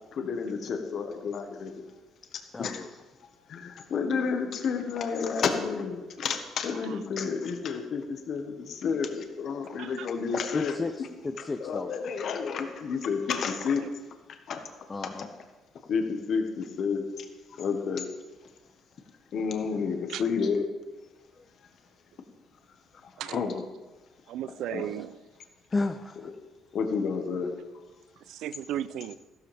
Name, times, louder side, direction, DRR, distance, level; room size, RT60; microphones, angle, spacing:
voice 1, 0.2-1.7 2.6-2.8 3.5-8.0 8.3-10.7 11.4-13.8 14.5-14.6 15.2-15.3 15.9-17.0 17.6-18.0 19.3-20.7 23.3-23.6 24.7-24.9 26.7-27.5, left 5 dB, 50° left, 1.4 m, -30 dB
voice 2, 2.5-2.9 10.5-11.9 14.9-15.3 21.4-21.5 25.7-26.3, left 3 dB, 20° left, 0.5 m, -32 dB
voice 3, 6.7-7.0 9.8-10.1 13.5-13.9 20.1-20.2 23.2-23.6 24.3-25.2 28.2-29.1, right 11 dB, 75° right, 0.5 m, -36 dB
15.0 x 13.0 x 3.5 m
cardioid pair, 140°, 0 cm